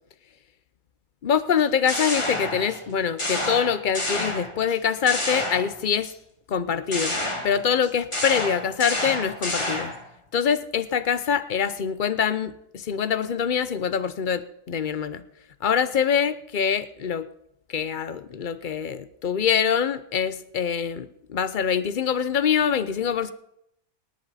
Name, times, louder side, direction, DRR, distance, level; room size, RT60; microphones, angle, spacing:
voice 1, 1.2-6.1 6.5-9.9 10.3-15.2 15.6-17.3 17.7-23.3, left 7 dB, 65° left, 13 dB, 0.5 m, -24 dB
sound 1, 1.6-2.9 3.2-4.7 5.1-6.1 6.9-10.1, left 1 dB, 15° left, 1.8 m, -29 dB
28.0 x 10.5 x 4.1 m, 0.76 s
omnidirectional pair, 1.8 m